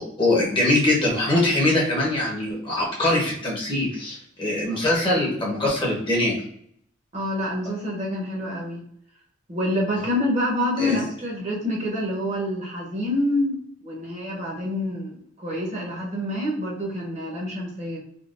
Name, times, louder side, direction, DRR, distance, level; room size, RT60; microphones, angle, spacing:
voice 1, 0.2-6.4 10.8-11.0, left 1 dB, 25° left, -4 dB, 0.8 m, -22 dB
voice 2, 7.1-8.8 9.5-18.0, left 1 dB, 35° right, -3 dB, 0.9 m, -27 dB
3.7 x 2.2 x 2.4 m, 0.68 s
head